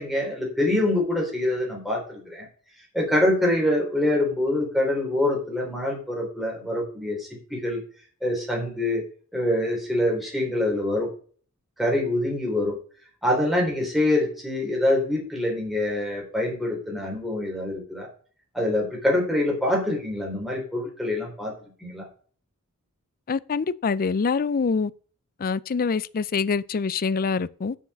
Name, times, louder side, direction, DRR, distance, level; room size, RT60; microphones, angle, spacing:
voice 1, 0.0-2.5 2.9-7.8 8.2-9.0 9.3-11.1 11.8-12.8 13.2-18.1 18.5-21.5 21.8-22.1, left 1 dB, ahead, 3.8 m, -25 dB
voice 2, 23.3-24.9 25.4-27.8, left 5 dB, 40° left, 0.4 m, -25 dB
7.3 x 7.0 x 6.9 m
head